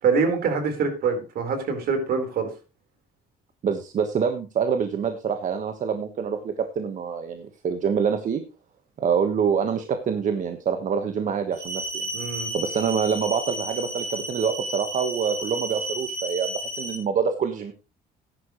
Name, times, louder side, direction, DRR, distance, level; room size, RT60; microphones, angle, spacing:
voice 1, 0.0-2.5 12.1-12.5, right 5 dB, 65° right, 6 dB, 4.1 m, -24 dB
voice 2, 3.6-8.4 9.0-12.1 12.5-17.7, right 7 dB, 50° right, 7 dB, 1.3 m, -26 dB
sound 1, 11.5-17.0, right 1 dB, 15° right, 5.2 m, -33 dB
14.5 x 10.5 x 3.1 m, 0.29 s
cardioid pair, 110°, 17 cm